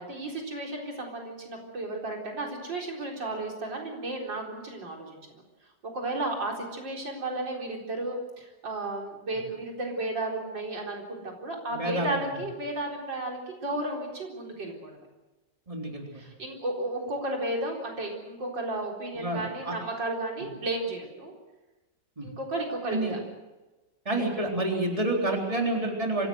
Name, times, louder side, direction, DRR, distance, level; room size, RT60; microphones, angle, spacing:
voice 1, 0.0-5.4 5.8-15.1 16.1-21.3 22.2-23.2 24.2-24.3, right 2 dB, 85° right, 0 dB, 4.8 m, -33 dB
voice 2, 11.7-12.2 15.7-16.1 19.1-19.7 22.2-22.3 22.9-23.1 24.1-26.3, right 2 dB, 20° right, 0 dB, 4.0 m, -28 dB
25.0 x 17.0 x 8.0 m, 1.1 s
omnidirectional pair, 1.9 m